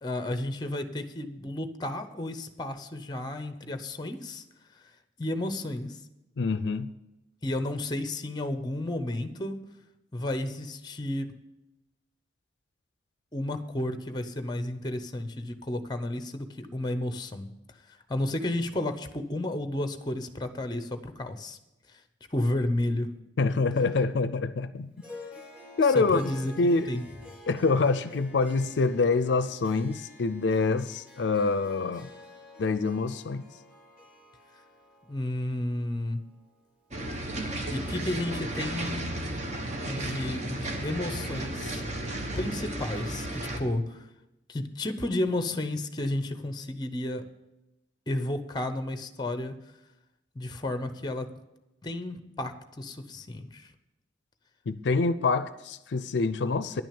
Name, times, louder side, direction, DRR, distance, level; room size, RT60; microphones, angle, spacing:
voice 1, 0.0-4.4 5.2-6.0 7.4-9.6 10.1-11.3 13.3-17.5 18.1-21.6 21.9-22.0 22.3-23.1 25.9-26.5 26.9-27.0 35.1-36.2 37.7-39.2 39.8-41.8 42.4-44.1 44.5-47.2 48.1-49.6 50.3-51.3 51.8-53.7, left 1 dB, 25° left, 0.7 m, -32 dB
voice 2, 6.4-6.9 23.4-24.9 25.8-26.2 26.6-26.9 27.5-32.1 32.6-33.5 54.7-56.8, left 4 dB, 70° left, 0.4 m, -26 dB
Harp, 25.0-37.5, left 2 dB, 5° right, 2.0 m, -50 dB
sound 1, 36.9-43.6, right 1 dB, 40° right, 1.1 m, -34 dB
10.5 x 6.2 x 8.6 m
head